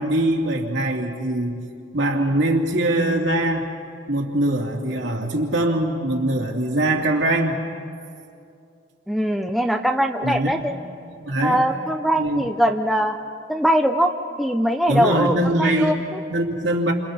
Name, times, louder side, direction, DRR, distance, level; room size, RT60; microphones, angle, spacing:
voice 1, 0.0-1.6 1.9-3.7 4.1-7.6 10.2-10.6 11.1-11.6 12.2-12.4 14.9-16.0 16.3-16.9, right 1 dB, 75° right, 0 dB, 2.5 m, -22 dB
voice 2, 9.1-10.8 11.4-13.2 13.5-14.1 14.4-16.2, equal, ahead, 3 dB, 0.7 m, -21 dB
29.5 x 26.5 x 4.3 m, 2.4 s
head